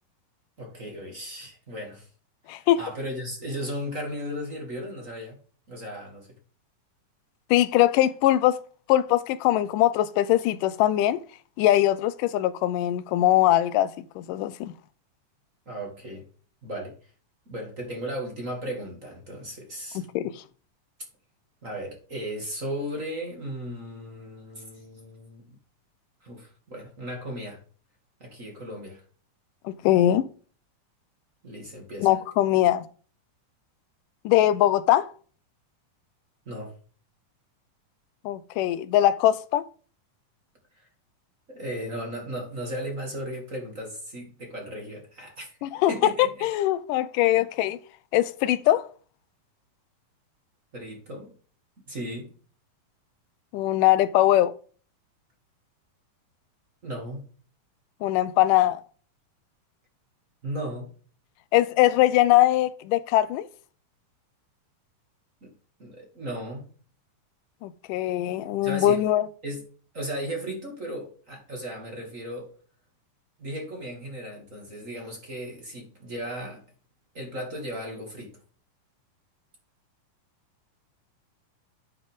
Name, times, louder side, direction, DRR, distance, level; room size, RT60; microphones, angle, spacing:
voice 1, 0.6-2.1 2.4-5.4 5.7-6.4 15.7-16.2 16.6-17.1 17.5-20.1 21.6-25.4 26.2-27.6 28.2-29.0 31.4-32.1 36.5-36.8 40.7-40.9 41.5-45.6 45.9-46.5 50.7-51.3 51.9-52.3 56.8-57.2 60.4-60.9 65.4-65.5 65.8-66.7 68.6-69.0 69.4-69.6 69.9-72.5 73.4-76.6 77.1-78.4, equal, 25° right, 2.2 m, -36 dB
voice 2, 7.5-8.6 8.9-11.2 11.6-13.9 14.2-14.7 20.2-20.4 29.7-30.3 32.0-32.9 34.3-35.1 38.3-39.6 45.6-45.9 46.2-47.8 48.1-48.9 53.5-54.5 58.0-58.8 61.5-63.5 67.6-69.2, left 13 dB, 85° left, 2.1 m, -21 dB
10.5 x 5.6 x 3.6 m
omnidirectional pair, 3.7 m